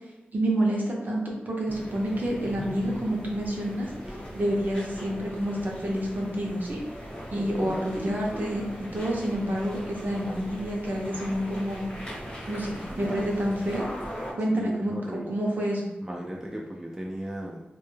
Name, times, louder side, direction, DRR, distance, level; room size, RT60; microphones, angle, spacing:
voice 1, 0.3-3.9 4.3-6.8 7.3-11.9 12.5-13.9 14.4-15.8, right 1 dB, 55° right, -2 dB, 0.6 m, -28 dB
sound 1, 1.7-14.3, equal, 30° left, 1.0 m, -39 dB
voice 2, 7.3-7.9 14.5-15.3 16.0-17.6, right 1 dB, 15° right, -2 dB, 0.3 m, -37 dB
2.2 x 2.0 x 3.1 m, 1.0 s
wide cardioid pair, 85°, 4 cm